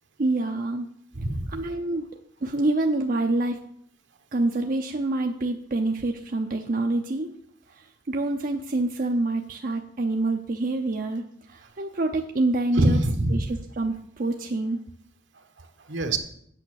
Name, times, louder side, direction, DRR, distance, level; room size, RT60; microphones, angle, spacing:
voice 1, 0.2-0.9 1.5-2.1 2.4-3.6 4.3-7.3 7.7-13.0 13.3-14.8, right 2 dB, 50° right, 3 dB, 0.6 m, -26 dB
voice 2, 1.1-1.6 12.7-13.5 15.6-16.2, right 1 dB, 75° right, 6 dB, 1.2 m, -25 dB
8.4 x 6.6 x 6.4 m, 0.69 s
head